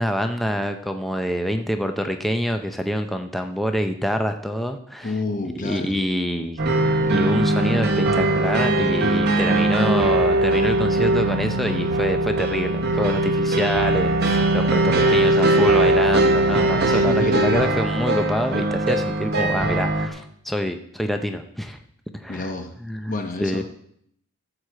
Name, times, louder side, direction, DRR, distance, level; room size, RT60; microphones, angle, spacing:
voice 1, 0.0-5.1 5.6-6.6 7.1-21.8 22.1-22.5 22.8-23.6, equal, ahead, 6 dB, 0.6 m, -26 dB
voice 2, 5.0-5.9 15.0-15.6 16.9-17.7 22.3-22.7 23.1-23.6, left 2 dB, 40° left, 5 dB, 0.9 m, -30 dB
sound 1, 6.6-20.1, right 1 dB, 50° right, 1.2 m, -20 dB
13.0 x 4.8 x 7.6 m, 0.68 s
head